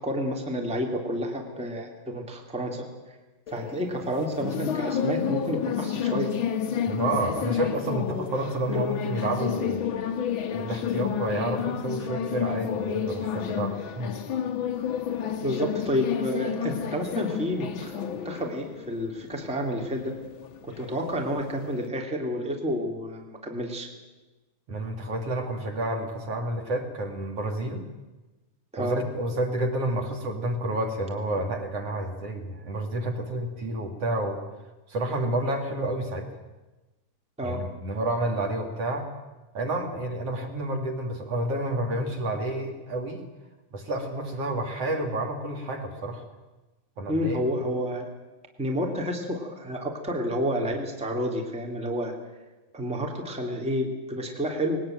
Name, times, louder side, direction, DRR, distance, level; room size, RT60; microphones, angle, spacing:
voice 1, 0.0-2.8 3.5-6.3 15.4-20.1 20.6-23.9 28.7-29.0 37.4-37.7 47.1-48.1 48.6-52.1 52.7-54.8, equal, ahead, 1 dB, 2.5 m, -30 dB
sound 1, 3.5-21.9, left 8 dB, 55° left, 1.5 m, -31 dB
voice 2, 6.9-9.9 10.5-14.2 24.7-27.9 28.8-34.4 34.9-36.3 37.4-39.1 39.5-43.2 43.7-46.2 47.0-47.4, right 1 dB, 55° right, 3 dB, 3.2 m, -30 dB
20.5 x 19.0 x 9.2 m, 1.1 s
omnidirectional pair, 3.4 m